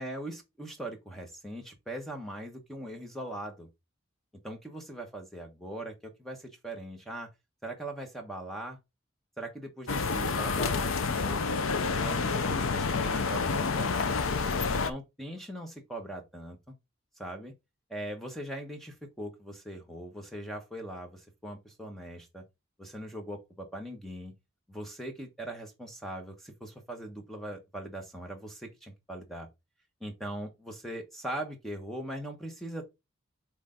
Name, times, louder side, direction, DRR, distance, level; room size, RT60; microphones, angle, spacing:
voice 1, 0.0-3.7 4.4-7.3 7.6-8.8 9.4-11.6 12.0-14.1 14.7-16.6 17.2-17.5 17.9-22.4 22.8-24.3 24.7-29.5 30.0-32.8, right 1 dB, ahead, 1.1 m, -40 dB
sound 1, 9.9-14.9, left 4 dB, 90° left, 0.7 m, -29 dB
8.1 x 3.3 x 3.8 m
head